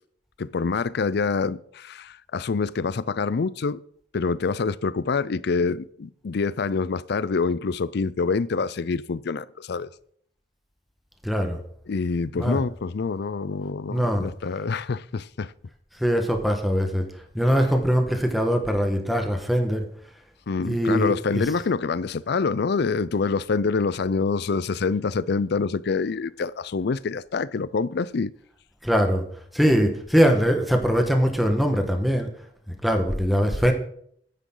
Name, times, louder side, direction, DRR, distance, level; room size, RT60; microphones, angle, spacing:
voice 1, 0.4-3.8 4.1-9.9 11.9-15.5 20.5-28.3, left 4 dB, 60° left, 0.5 m, -26 dB
voice 2, 11.2-11.6 12.4-12.6 13.9-14.3 16.0-17.0 17.3-19.8 20.7-21.4 28.8-29.2 29.5-32.3 32.8-33.7, equal, ahead, 1.4 m, -22 dB
13.0 x 10.0 x 3.9 m
head